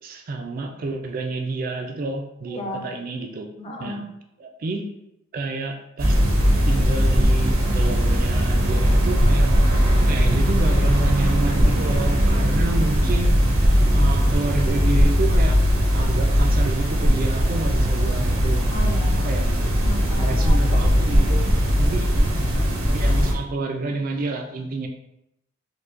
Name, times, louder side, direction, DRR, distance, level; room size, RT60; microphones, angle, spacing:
voice 1, 0.0-3.5 3.8-4.0 4.4-4.9 5.3-6.2 6.6-9.7 10.0-13.3 13.9-15.6 15.9-18.7 19.2-19.5 20.2-21.5 21.8-22.5 22.9-24.9, right 3 dB, 45° right, 3 dB, 0.3 m, -29 dB
voice 2, 2.5-2.9 3.6-4.1 18.7-19.2 19.8-21.2, equal, 30° left, 0 dB, 0.6 m, -34 dB
sound 1, 6.0-23.3, equal, 80° right, 0.8 m, -19 dB
4.5 x 2.2 x 2.5 m, 0.85 s
head